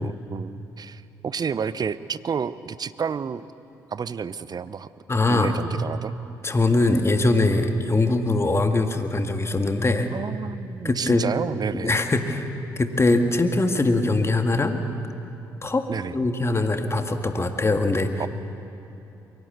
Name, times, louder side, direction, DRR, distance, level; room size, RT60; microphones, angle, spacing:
voice 1, 0.0-3.4 3.9-4.9 5.3-6.1 10.1-12.0 15.9-16.1 18.2-18.3, right 6 dB, 40° right, 16 dB, 0.7 m, -30 dB
voice 2, 5.1-5.6 6.4-10.1 10.8-11.3 11.7-12.5 12.8-14.8 15.6-15.8 16.1-18.1, left 2 dB, 25° left, 6 dB, 1.9 m, -22 dB
23.0 x 17.0 x 8.1 m, 2.9 s
hypercardioid pair, 45°, 10 cm